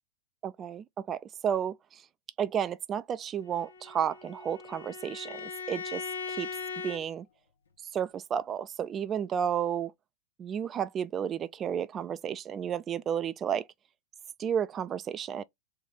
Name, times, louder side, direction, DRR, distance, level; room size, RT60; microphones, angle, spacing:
voice 1, 0.4-2.0 2.4-6.5 6.8-7.3 7.9-9.9 10.4-13.7 14.4-15.4, right 8 dB, 30° right, 0.3 m, -32 dB
Bowed string instrument, 3.5-7.0, left 5 dB, 90° left, 0.9 m, -39 dB
3.3 x 2.6 x 3.7 m
hypercardioid pair, 100°, 0 cm